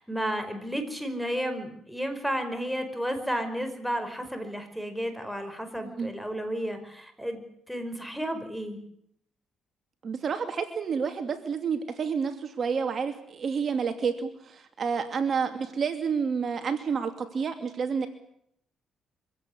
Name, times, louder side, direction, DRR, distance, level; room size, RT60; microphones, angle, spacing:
voice 1, 0.0-8.8, equal, ahead, 8 dB, 5.2 m, -32 dB
voice 2, 10.0-18.1, right 6 dB, 50° right, 7 dB, 2.8 m, -29 dB
24.5 x 16.5 x 10.0 m, 0.72 s
cardioid pair, 90°, 0 cm